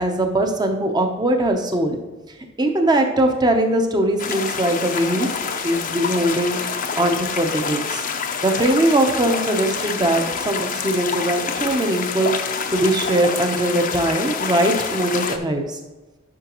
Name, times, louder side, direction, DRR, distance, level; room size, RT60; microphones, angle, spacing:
voice 1, 0.0-2.0 2.6-6.6 7.0-8.0 8.4-12.3 12.7-15.8, right 1 dB, 20° right, 4 dB, 0.8 m, -21 dB
sound 1, 4.2-15.4, left 6 dB, 40° left, 0.6 m, -27 dB
11.0 x 5.7 x 3.0 m, 1.2 s
head